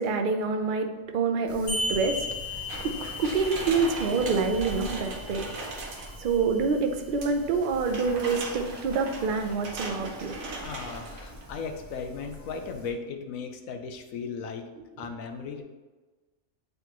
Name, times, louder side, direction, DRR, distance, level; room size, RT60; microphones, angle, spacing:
voice 1, 0.0-2.2 2.8-5.5 6.2-10.4, right 4 dB, 55° right, 5 dB, 0.6 m, -27 dB
Wind, 1.5-12.9, left 1 dB, 15° left, 1.2 m, -45 dB
sound 1, 1.7-6.7, left 1 dB, 55° left, 1.6 m, -36 dB
sound 2, 2.7-6.4 7.2-11.6 12.0-12.1, right 3 dB, 85° right, 1.4 m, -39 dB
voice 2, 10.6-14.7 15.0-15.6, left 5 dB, 90° left, 6 dB, 1.1 m, -36 dB
8.1 x 3.9 x 3.0 m, 1.2 s
omnidirectional pair, 1.4 m